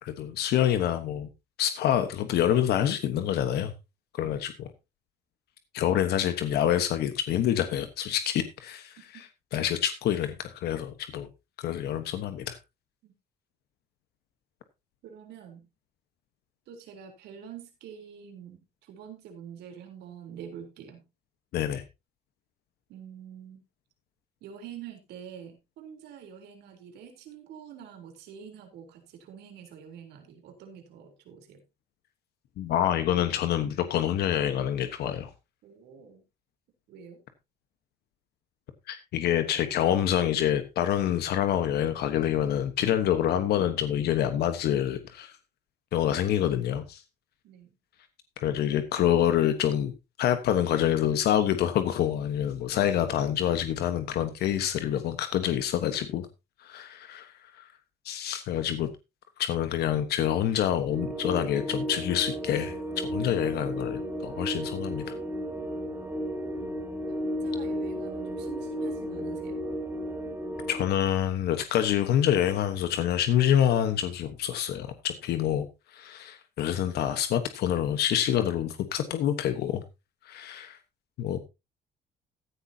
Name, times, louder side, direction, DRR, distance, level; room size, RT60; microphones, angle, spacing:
voice 1, 0.0-1.3 1.6-3.7 4.1-4.7 5.7-9.0 9.5-11.3 11.6-12.6 21.5-21.8 32.6-35.3 38.9-45.3 45.9-47.0 48.4-49.9 50.2-56.3 56.6-57.7 58.0-58.9 59.4-65.2 70.7-75.7 75.9-79.8 80.2-80.8 81.2-81.4, left 10 dB, 70° left, 9 dB, 1.2 m, -27 dB
voice 2, 15.0-15.7 16.7-21.0 22.9-23.6 24.4-31.6 35.6-36.2 36.9-37.2 47.4-47.8 66.3-69.6, right 8 dB, 80° right, 4 dB, 3.5 m, -46 dB
sound 1, 60.9-70.8, equal, 15° right, 2.2 m, -34 dB
15.0 x 10.0 x 2.8 m, 0.25 s
cardioid pair, 110°, 17 cm